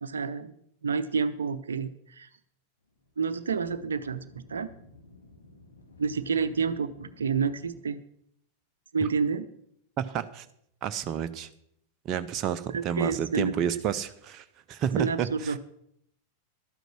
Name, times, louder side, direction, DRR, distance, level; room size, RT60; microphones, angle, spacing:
voice 1, 0.0-2.3 3.2-4.2 4.5-4.7 6.0-8.0 8.9-9.5 12.7-13.5 15.0-15.6, right 5 dB, 70° right, 12 dB, 0.7 m, -29 dB
sound 1, 2.8-7.8, left 3 dB, 70° left, 2.2 m, -53 dB
voice 2, 10.0-10.5 10.8-11.5 12.0-15.5, right 9 dB, 35° right, 9 dB, 0.7 m, -30 dB
12.5 x 9.2 x 6.2 m, 0.71 s
figure-of-eight pair, 90°, 0 cm